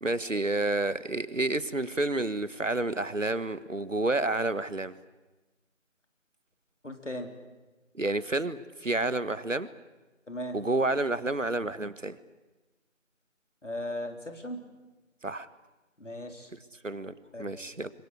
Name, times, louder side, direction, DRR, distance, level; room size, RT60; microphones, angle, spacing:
voice 1, 0.0-4.9 7.9-9.7 10.5-12.2 15.2-15.5 16.5-16.6 16.8-17.9, right 2 dB, 70° right, 15 dB, 1.5 m, -30 dB
voice 2, 6.8-7.4 10.3-10.6 13.6-14.6 16.0-16.5 17.3-17.5, left 1 dB, 65° left, 5 dB, 4.0 m, -37 dB
25.5 x 23.0 x 8.3 m, 1.1 s
figure-of-eight pair, 180°, 39 cm